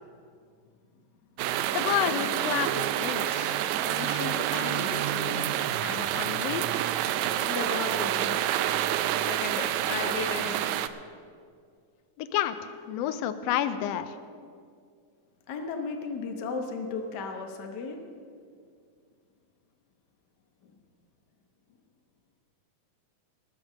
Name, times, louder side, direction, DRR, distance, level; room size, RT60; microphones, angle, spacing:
sound 1, 1.4-10.9, right 12 dB, 80° right, 1.7 m, -28 dB
voice 1, 1.7-5.5 5.8-6.7 12.2-14.2, left 11 dB, 85° left, 10 dB, 1.4 m, -31 dB
voice 2, 7.4-8.4 9.2-10.7 15.5-18.1, left 4 dB, 65° left, 4 dB, 1.0 m, -34 dB
20.0 x 7.0 x 6.2 m, 2.2 s
omnidirectional pair, 3.6 m